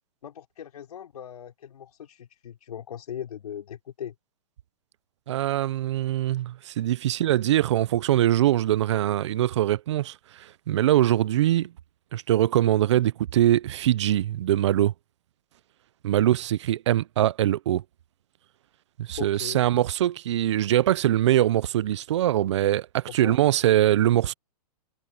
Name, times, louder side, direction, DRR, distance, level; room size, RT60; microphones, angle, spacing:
voice 1, 0.2-4.1 7.1-7.2 19.2-19.6 23.2-23.4, left 9 dB, 75° left, 3.9 m, -39 dB
voice 2, 5.3-11.7 12.1-14.9 16.0-17.8 19.0-24.3, right 12 dB, 50° right, 0.5 m, -23 dB
hypercardioid pair, 170°, 19 cm